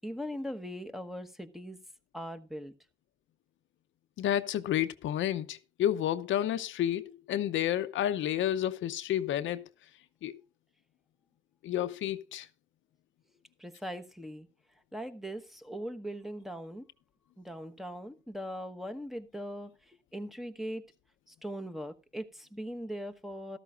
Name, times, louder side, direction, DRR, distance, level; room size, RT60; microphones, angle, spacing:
voice 1, 0.0-1.8 2.1-2.7 13.6-14.5 14.9-16.8 17.4-19.7 20.1-20.8 21.4-23.6, equal, ahead, 1.1 m, -40 dB
voice 2, 4.2-9.6 10.2-10.4 11.6-12.5, left 11 dB, 75° left, 0.7 m, -30 dB
13.0 x 13.0 x 2.4 m
cardioid pair, 90°, 20 cm